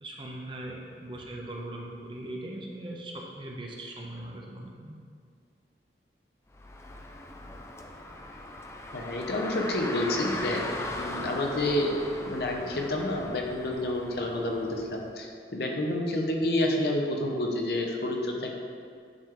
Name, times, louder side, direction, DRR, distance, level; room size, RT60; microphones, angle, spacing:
voice 1, 0.0-4.9, right 1 dB, 30° right, -1 dB, 0.7 m, -40 dB
Car, 6.5-15.1, left 1 dB, 15° left, 0.3 m, -39 dB
voice 2, 8.9-10.6 11.0-11.9 12.2-18.5, left 1 dB, 60° left, 1 dB, 0.8 m, -29 dB
9.6 x 3.4 x 3.8 m, 2.2 s
head